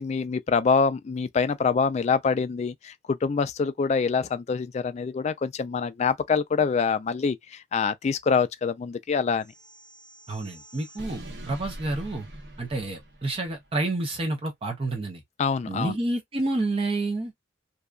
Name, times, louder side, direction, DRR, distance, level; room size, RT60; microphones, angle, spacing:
voice 1, 0.0-9.5 15.4-16.0, left 5 dB, 40° left, 0.3 m, -25 dB
sound 1, 9.4-13.7, right 1 dB, 70° right, 0.9 m, -43 dB
voice 2, 10.3-12.3 12.6-15.2 15.7-17.3, right 2 dB, 30° right, 0.6 m, -29 dB
2.7 x 2.2 x 2.3 m
head